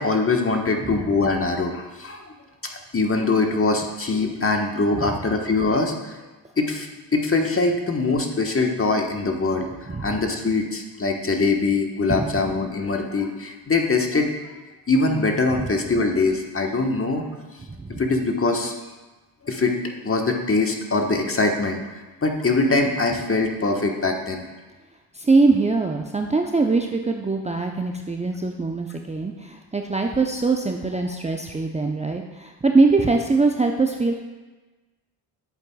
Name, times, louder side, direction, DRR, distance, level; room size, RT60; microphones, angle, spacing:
voice 1, 0.0-2.3 2.9-6.2 6.6-14.3 14.9-17.3 17.9-18.7 19.4-19.8 20.0-21.8 22.2-24.4, left 3 dB, 30° left, 2 dB, 1.4 m, -23 dB
voice 2, 17.6-18.0 25.1-34.1, right 3 dB, 15° right, 2 dB, 0.7 m, -22 dB
11.0 x 7.9 x 2.4 m, 1.2 s
hypercardioid pair, 45°, 47 cm